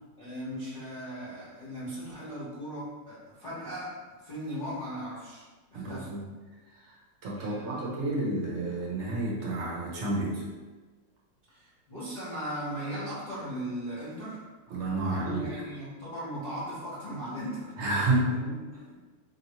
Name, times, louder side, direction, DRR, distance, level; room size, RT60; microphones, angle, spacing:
voice 1, 0.2-5.4 5.7-6.1 7.3-8.2 11.5-14.4 15.0-17.9 18.3-19.0, equal, 35° left, -10 dB, 0.8 m, -38 dB
voice 2, 5.7-6.2 6.9-7.0 7.2-10.4 14.7-15.5 17.8-18.4, right 2 dB, 50° right, -4 dB, 0.9 m, -30 dB
3.3 x 2.8 x 4.3 m, 1.3 s
omnidirectional pair, 2.3 m